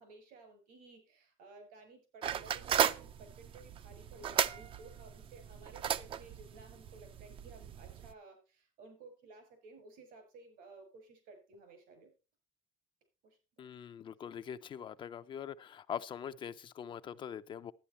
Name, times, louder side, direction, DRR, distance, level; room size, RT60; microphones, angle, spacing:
voice 1, 0.0-12.1 13.2-13.4, right 3 dB, 80° right, 6.8 m, -56 dB
sound 1, 2.2-8.1, right 9 dB, 40° right, 0.5 m, -35 dB
voice 2, 13.6-17.7, left 8 dB, 35° left, 0.5 m, -43 dB
11.5 x 9.8 x 4.1 m
cardioid pair, 145°, 14 cm